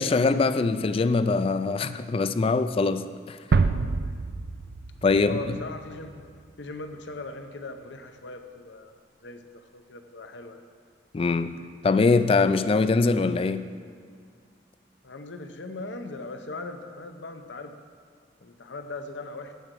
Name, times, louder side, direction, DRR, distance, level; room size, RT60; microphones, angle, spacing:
voice 1, 0.0-3.4 5.0-5.6 11.1-13.7, left 3 dB, 30° left, 12 dB, 0.3 m, -23 dB
sound 1, 3.5-6.4, right 4 dB, 60° right, 0.4 m, -27 dB
voice 2, 5.2-6.3 6.6-8.9 9.2-10.6 15.0-17.7 18.4-19.5, left 3 dB, 70° left, 7 dB, 0.8 m, -39 dB
9.3 x 5.0 x 7.5 m, 2.1 s
head